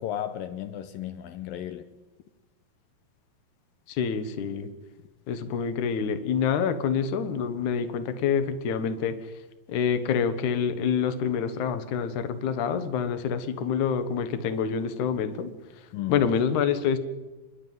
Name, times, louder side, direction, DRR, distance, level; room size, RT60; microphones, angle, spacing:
voice 1, 0.0-1.9 15.9-16.2, left 11 dB, 80° left, 8 dB, 2.6 m, -34 dB
voice 2, 3.9-4.7 5.3-9.3 9.7-15.5 16.1-17.0, left 7 dB, 65° left, 10 dB, 2.6 m, -27 dB
28.0 x 11.5 x 9.3 m, 1.2 s
omnidirectional pair, 4.2 m